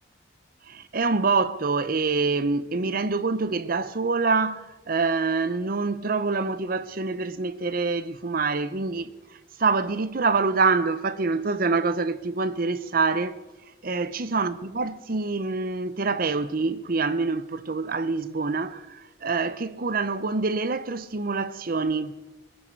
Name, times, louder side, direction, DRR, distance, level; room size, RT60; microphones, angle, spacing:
voice 1, 0.7-9.1 9.6-13.4 13.8-22.2, right 4 dB, 50° right, 0.7 m, -26 dB
22.0 x 10.5 x 4.6 m
head